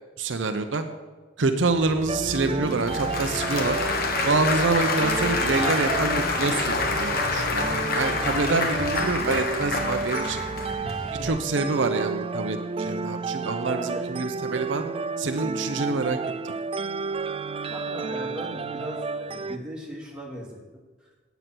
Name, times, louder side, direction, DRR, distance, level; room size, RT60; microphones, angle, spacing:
voice 1, 0.2-0.8 1.4-3.8 4.2-10.4 11.2-14.8 15.2-16.2 16.4-16.5, right 3 dB, 70° right, 7 dB, 0.7 m, -26 dB
Applause / Crowd, 1.7-11.3, left 3 dB, 55° left, 1.3 m, -28 dB
sound 1, 2.1-19.6, right 4 dB, 30° right, 0.4 m, -32 dB
voice 2, 13.6-14.1 17.6-20.6, equal, 5° right, -4 dB, 2.7 m, -37 dB
9.4 x 8.1 x 6.0 m, 1.3 s
head